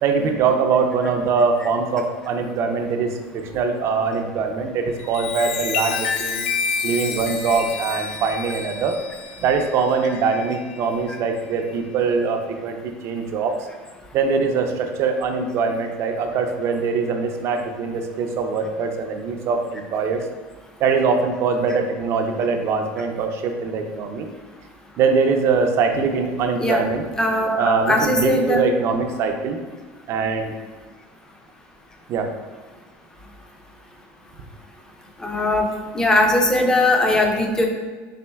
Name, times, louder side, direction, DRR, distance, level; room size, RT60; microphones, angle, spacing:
voice 1, 0.0-6.4 6.8-9.0 9.4-13.6 14.1-20.3 20.8-24.3 25.0-27.0 27.6-29.6 30.1-30.5 32.1-32.3, right 5 dB, 50° right, 5 dB, 0.5 m, -22 dB
Chime, 4.9-10.9 11.4-11.7, left 5 dB, 85° left, 0.5 m, -29 dB
voice 2, 27.2-28.6 35.2-35.7 35.9-37.7, left 1 dB, 10° left, 2 dB, 0.5 m, -19 dB
4.2 x 3.6 x 2.3 m, 1.4 s
supercardioid pair, 130°, 6 cm